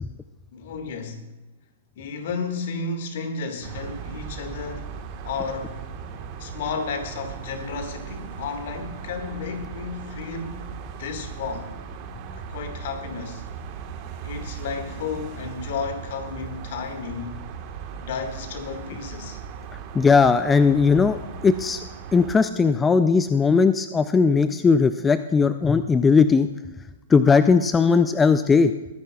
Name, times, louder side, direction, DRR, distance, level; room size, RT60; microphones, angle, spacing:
voice 1, 0.5-1.2 2.0-4.9 5.2-5.8 6.4-10.7 11.0-11.7 12.3-13.4 14.2-17.4 18.0-19.4, left 5 dB, 60° left, 1.9 m, -32 dB
sound 1, 3.6-22.4, right 6 dB, 40° right, 1.4 m, -38 dB
voice 2, 19.9-21.8 22.1-26.5 27.1-28.7, left 5 dB, 15° left, 0.4 m, -18 dB
22.5 x 10.0 x 2.4 m
hypercardioid pair, 120°, 0 cm